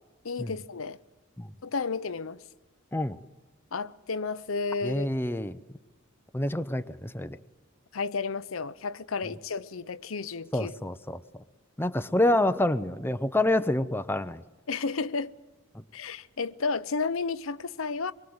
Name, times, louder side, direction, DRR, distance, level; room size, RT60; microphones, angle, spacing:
voice 1, 0.2-1.0 1.6-2.4 3.7-5.4 7.9-10.7 14.7-15.3 15.9-18.1, left 4 dB, 75° left, 0.8 m, -32 dB
voice 2, 4.8-5.6 6.3-7.4 10.5-11.2 11.8-14.4, left 1 dB, 10° left, 0.7 m, -27 dB
24.0 x 23.0 x 8.0 m
head